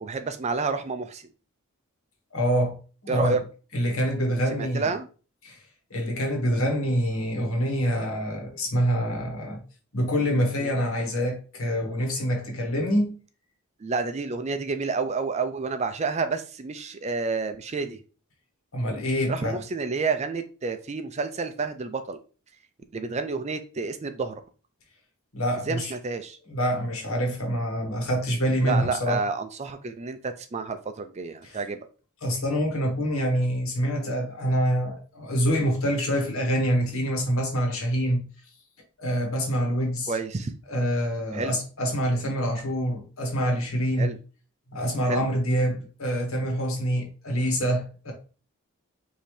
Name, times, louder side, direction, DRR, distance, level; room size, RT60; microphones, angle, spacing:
voice 1, 0.0-1.2 3.1-3.4 4.6-5.1 10.6-10.7 13.8-18.0 19.3-22.2 22.9-24.4 25.7-26.4 28.6-31.8 40.1-40.5 41.3-41.6 44.0-44.2 45.0-45.2, right 4 dB, 30° right, 0.4 m, -29 dB
voice 2, 2.3-2.8 3.0-3.4 3.7-4.9 5.4-5.6 5.9-9.6 9.9-13.2 18.7-19.6 25.3-25.9 26.5-29.2 31.4-31.6 32.2-38.2 39.0-40.2 40.7-44.1 44.7-48.1, equal, 70° left, 1.5 m, -26 dB
5.2 x 2.8 x 3.2 m
head